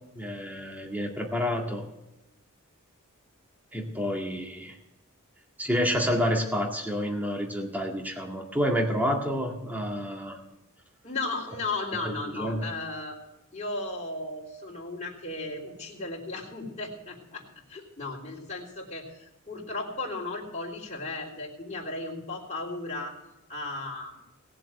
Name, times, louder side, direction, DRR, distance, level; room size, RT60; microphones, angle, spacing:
voice 1, 0.1-1.8 3.7-4.8 5.6-10.4 12.0-12.7, equal, 10° right, 1 dB, 2.0 m, -29 dB
voice 2, 11.0-13.2 13.5-17.4 17.7-23.1 23.5-24.2, left 2 dB, 35° left, -5 dB, 3.6 m, -35 dB
18.5 x 7.6 x 8.0 m, 0.91 s
head